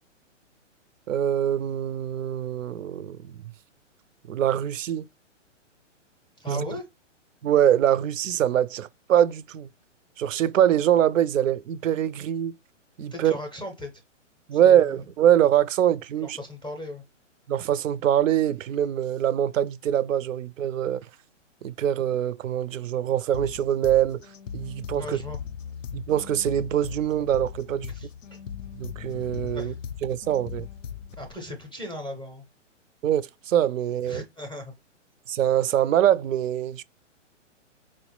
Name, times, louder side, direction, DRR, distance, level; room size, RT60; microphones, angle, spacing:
voice 1, 1.1-3.4 4.3-5.1 6.5-6.7 7.4-9.7 10.2-12.5 13.0-13.3 14.5-16.4 17.5-21.0 21.6-24.2 24.5-25.2 25.9-27.9 28.7-29.7 30.0-30.7 33.0-34.2 35.3-36.8, right 10 dB, 90° right, 0.5 m, -23 dB
voice 2, 6.4-6.8 13.1-13.9 14.5-15.0 16.2-17.0 25.0-25.4 27.9-28.4 29.5-29.8 31.2-32.5 34.1-34.7, left 1 dB, 5° left, 0.5 m, -37 dB
sound 1, 23.3-31.3, left 8 dB, 80° left, 0.6 m, -39 dB
4.5 x 2.0 x 3.0 m
hypercardioid pair, 140°, 38 cm